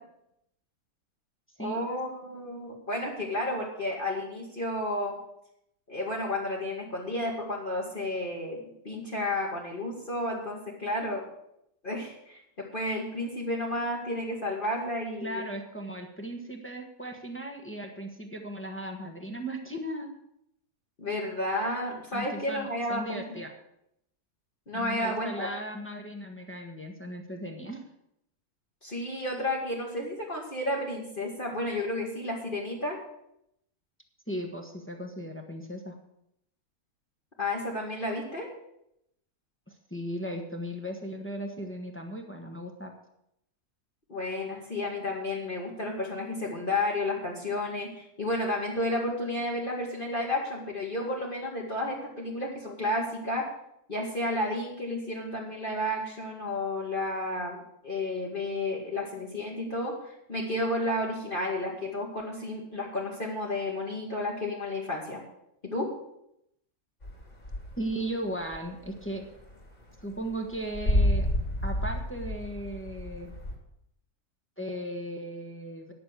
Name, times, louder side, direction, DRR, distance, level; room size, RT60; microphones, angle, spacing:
voice 1, 1.6-5.2 5.9-11.3 11.8-15.4 21.0-23.2 24.7-25.5 28.8-33.0 37.4-38.5 44.1-53.5 53.9-65.2 65.6-65.9, left 1 dB, 35° left, -3 dB, 1.9 m, -32 dB
voice 2, 15.2-20.1 22.1-23.5 24.7-27.8 34.3-35.9 39.7-42.9 67.8-69.2 70.0-71.3 71.6-73.3 74.6-75.9, right 1 dB, 10° left, 3 dB, 1.2 m, -37 dB
sound 1, 67.0-68.0 68.3-73.5, equal, 50° left, 2.8 m, -29 dB
10.5 x 6.4 x 8.1 m, 0.79 s
omnidirectional pair, 1.6 m